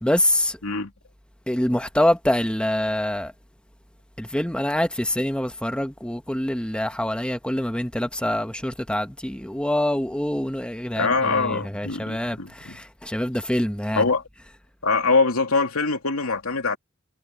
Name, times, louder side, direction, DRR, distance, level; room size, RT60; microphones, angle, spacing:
voice 1, 0.0-0.6 1.5-3.3 4.2-14.0, left 1 dB, 5° left, 1.2 m, -25 dB
voice 2, 11.0-12.8 14.0-14.2 14.8-16.8, left 4 dB, 90° left, 2.8 m, -23 dB
head